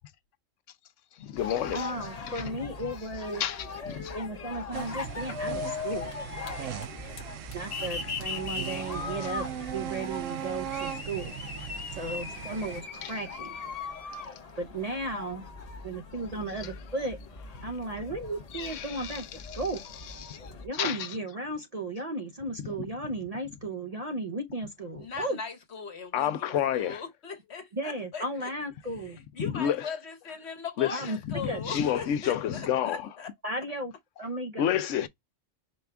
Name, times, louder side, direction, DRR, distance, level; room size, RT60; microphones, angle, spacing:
voice 1, 1.2-1.9 2.3-2.4 3.4-4.1 13.0-13.1 16.6-16.7 18.5-19.3 19.5-19.6 20.1-20.4 20.7-21.2 22.6-22.9 26.1-27.0 29.4-29.9 30.8-33.1 34.6-35.1, left 10 dB, 80° left, 0.9 m, -30 dB
sound 1, 1.4-20.7, left 5 dB, 35° left, 0.8 m, -39 dB
voice 2, 1.7-3.4 4.1-6.1 6.6-6.8 7.5-11.4 12.0-13.6 14.6-15.5 15.8-17.2 17.6-19.8 20.6-25.4 27.7-29.2 30.9-31.2 31.5-31.6 33.4-33.9 34.2-34.7, right 2 dB, 40° right, 0.6 m, -35 dB
sound 2, 4.7-12.8, right 11 dB, 85° right, 0.9 m, -39 dB
voice 3, 25.0-28.5 29.0-33.3, left 5 dB, 60° left, 1.4 m, -39 dB
5.1 x 2.3 x 3.3 m
omnidirectional pair, 1.3 m